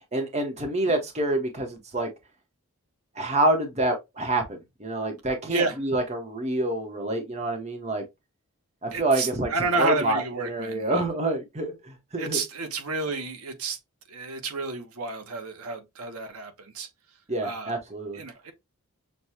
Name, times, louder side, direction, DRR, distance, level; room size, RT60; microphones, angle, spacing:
voice 1, 0.1-2.1 3.2-8.0 8.8-9.5 9.8-12.4 17.3-18.2, right 2 dB, 30° right, 0.9 m, -27 dB
voice 2, 5.5-5.8 8.9-10.9 12.2-13.8 14.1-16.9 17.4-17.7 18.1-18.5, right 3 dB, 85° right, 1.0 m, -30 dB
6.4 x 2.2 x 2.7 m
head